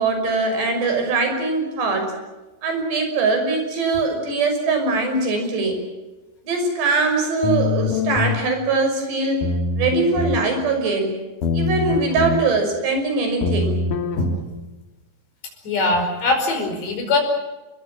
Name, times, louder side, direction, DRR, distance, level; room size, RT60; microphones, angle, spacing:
voice 1, 0.0-2.1 2.6-5.8 6.4-9.4 9.8-11.1 11.5-13.8, right 3 dB, 80° right, 5 dB, 8.0 m, -22 dB
sound 1, 7.4-8.4 9.4-10.4 11.4-12.4 13.4-14.4, left 4 dB, 55° left, 3.5 m, -23 dB
voice 2, 15.7-17.2, left 2 dB, 85° left, 4 dB, 7.4 m, -21 dB
29.0 x 22.0 x 7.5 m, 1.1 s
omnidirectional pair, 4.8 m